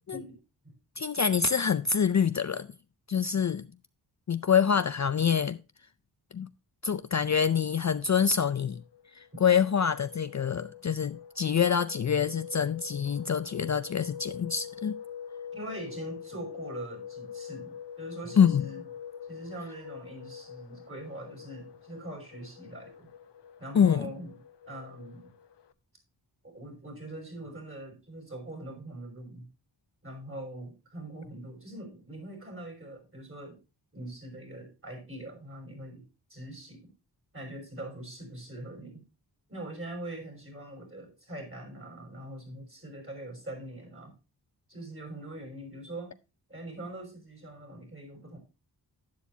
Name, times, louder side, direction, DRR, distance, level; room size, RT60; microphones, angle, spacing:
voice 1, 1.0-2.7 3.1-3.7 4.3-5.6 6.3-6.5 6.8-8.8 9.1-15.0 18.4-18.6 23.7-24.1, left 7 dB, 40° left, 0.5 m, -26 dB
sound 1, 8.0-25.7, left 8 dB, 75° left, 0.9 m, -45 dB
voice 2, 15.5-18.8 19.2-23.1 23.6-24.3 24.6-25.3 26.4-29.5 30.0-33.6 33.9-36.0 36.3-36.9 37.3-39.0 39.5-44.1 44.7-46.1 46.5-48.4, right 1 dB, 30° right, 6.0 m, -42 dB
11.5 x 10.5 x 2.8 m
wide cardioid pair, 135°, 42 cm